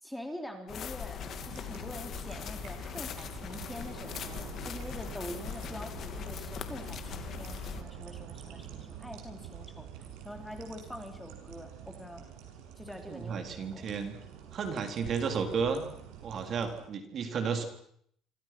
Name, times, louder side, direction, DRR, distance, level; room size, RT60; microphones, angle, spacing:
voice 1, 0.0-9.9 10.2-12.3 12.8-13.8, left 1 dB, 5° left, 5 dB, 3.8 m, -45 dB
sound 1, 0.7-7.8, left 8 dB, 45° left, 2.3 m, -40 dB
sound 2, 1.2-16.8, right 9 dB, 85° right, 7.2 m, -47 dB
voice 2, 13.1-14.2 14.5-15.8 16.2-17.6, right 6 dB, 40° right, 6 dB, 3.9 m, -32 dB
27.5 x 26.0 x 6.1 m, 0.68 s
cardioid pair, 135°, 0 cm